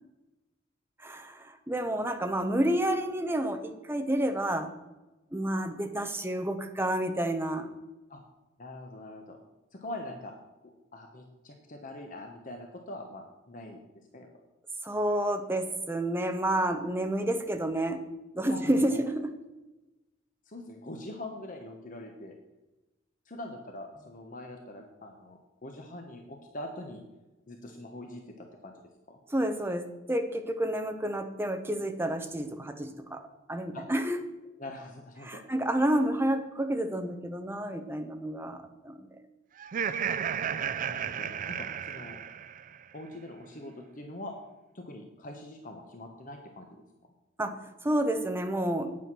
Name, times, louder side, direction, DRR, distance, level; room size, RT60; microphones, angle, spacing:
voice 1, 1.0-4.7 5.3-7.7 14.8-18.0 18.3-19.4 29.3-33.2 33.5-34.2 35.2-39.1 47.4-49.0, right 1 dB, 10° right, 6 dB, 0.9 m, -30 dB
voice 2, 8.6-9.4 9.7-10.3 10.6-13.8 14.1-14.3 18.5-19.0 20.5-22.3 23.3-27.0 27.5-28.7 29.1-29.2 33.7-33.8 34.6-35.4 40.0-40.2 40.9-42.2 42.9-44.3 44.7-46.8, left 1 dB, 45° left, 3 dB, 1.1 m, -43 dB
Laughter, 39.6-42.8, right 8 dB, 45° right, 0.4 m, -33 dB
9.3 x 8.5 x 6.1 m, 1.1 s
head